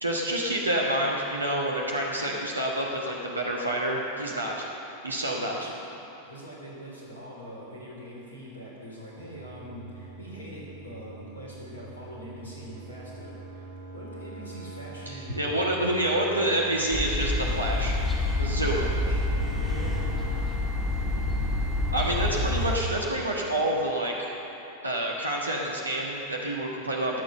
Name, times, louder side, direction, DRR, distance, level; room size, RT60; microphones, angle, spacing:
voice 1, 0.0-4.7 5.0-5.7 15.1-17.9 18.4-18.9 21.9-24.3 24.8-27.2, right 1 dB, 80° right, -2 dB, 1.3 m, -28 dB
voice 2, 5.4-5.7 6.2-13.7 13.9-15.4 18.6-18.8 19.0-19.2 19.6-19.9 20.9-21.5 22.2-22.6, equal, 70° left, -4 dB, 3.7 m, -43 dB
sound 1, 9.2-20.4, right 3 dB, 90° left, 2.0 m, -44 dB
Wind instrument woodwind instrument, 16.8-22.1, right 2 dB, 50° left, 1.2 m, -45 dB
sound 2, 16.9-22.8, left 2 dB, 10° left, 1.8 m, -27 dB
19.5 x 6.5 x 6.8 m, 3.0 s
figure-of-eight pair, 90°, 0 cm